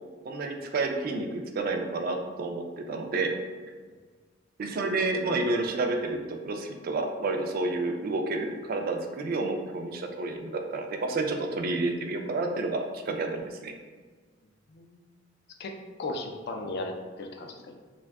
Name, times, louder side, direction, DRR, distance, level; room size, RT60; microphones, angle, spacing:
voice 1, 0.2-3.3 4.6-13.7, right 3 dB, 50° right, 4 dB, 0.3 m, -30 dB
voice 2, 15.6-17.8, left 2 dB, 60° left, 4 dB, 0.3 m, -36 dB
2.5 x 2.2 x 3.4 m, 1.5 s
head